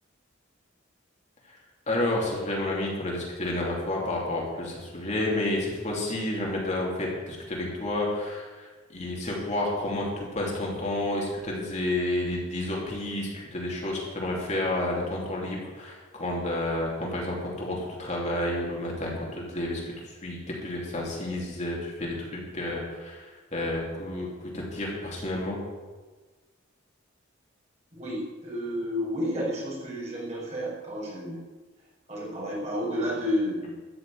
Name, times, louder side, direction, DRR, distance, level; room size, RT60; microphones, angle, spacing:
voice 1, 1.9-19.8 20.2-25.6, left 1 dB, 35° left, -3 dB, 3.0 m, -30 dB
voice 2, 27.9-31.4 32.1-33.8, equal, 35° right, -6 dB, 4.9 m, -31 dB
13.5 x 6.6 x 9.3 m, 1.3 s
head